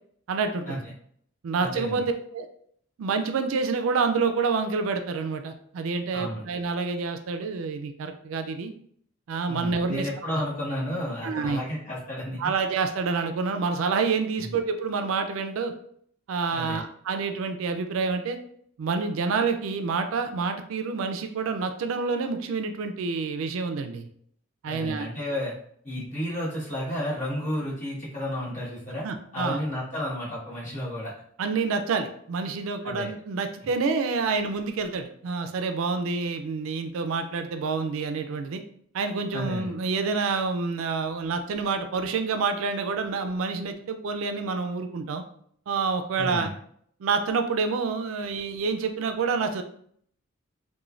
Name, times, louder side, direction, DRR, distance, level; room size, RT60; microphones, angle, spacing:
voice 1, 0.3-0.8 1.4-2.5 3.0-8.7 9.3-10.1 11.2-11.6 12.4-15.7 16.3-18.4 18.8-24.1 24.6-25.1 29.0-29.6 31.4-38.6 38.9-45.2 45.7-46.5 47.0-49.6, right 4 dB, 80° right, 7 dB, 0.3 m, -28 dB
voice 2, 1.6-2.1 6.1-6.4 9.5-12.5 14.4-14.5 16.5-16.8 24.7-25.5 25.8-29.0 29.3-31.1 32.8-33.1 39.3-39.7 46.2-46.5, equal, 35° left, -7 dB, 1.1 m, -32 dB
3.1 x 2.1 x 2.4 m, 0.64 s
head